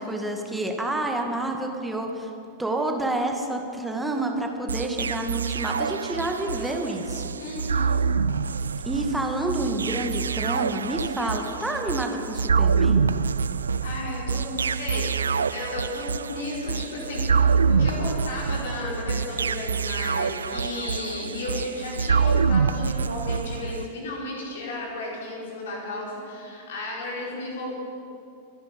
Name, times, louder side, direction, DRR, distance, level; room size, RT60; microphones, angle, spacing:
voice 1, 0.0-2.3 2.6-7.4 8.9-13.0, right 2 dB, 5° right, 2 dB, 1.9 m, -28 dB
sound 1, 4.7-23.9, right 5 dB, 70° right, 0.3 m, -26 dB
voice 2, 7.4-7.9 13.8-15.2 15.4-27.7, left 2 dB, 60° left, -3 dB, 4.7 m, -34 dB
25.0 x 10.5 x 5.3 m, 2.6 s
figure-of-eight pair, 90°, 0 cm